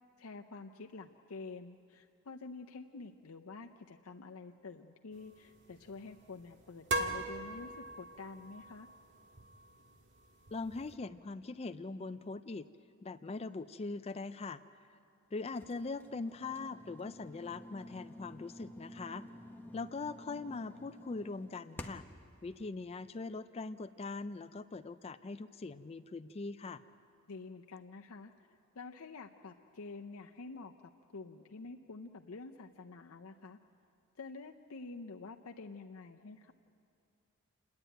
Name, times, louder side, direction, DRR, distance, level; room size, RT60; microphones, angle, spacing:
voice 1, 0.2-8.9 27.3-30.7 31.1-33.6 34.2-36.5, left 3 dB, 70° left, 2 dB, 0.7 m, -48 dB
Bass Plunk, 5.1-11.0, right 2 dB, 55° right, 1.7 m, -42 dB
voice 2, 10.5-12.7 13.0-14.6 15.3-19.2 19.7-22.0 22.4-26.8, left 3 dB, 25° left, 12 dB, 0.4 m, -41 dB
sound 1, 15.6-22.2, left 1 dB, 10° left, 0.8 m, -51 dB
29.0 x 10.5 x 9.0 m, 2.5 s
head